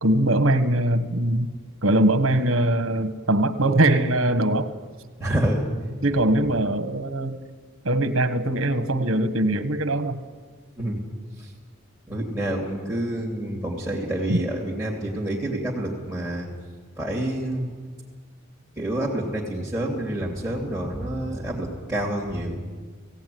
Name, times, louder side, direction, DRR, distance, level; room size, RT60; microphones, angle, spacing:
voice 1, 0.0-1.5 1.8-4.7 6.0-7.4 7.8-10.2 14.3-14.4, right 1 dB, 80° right, 10 dB, 1.4 m, -21 dB
voice 2, 5.2-5.6 10.8-11.0 12.1-16.5 17.0-17.7 18.8-22.6, right 1 dB, 5° right, -2 dB, 2.9 m, -28 dB
17.5 x 17.0 x 9.4 m, 1.5 s
head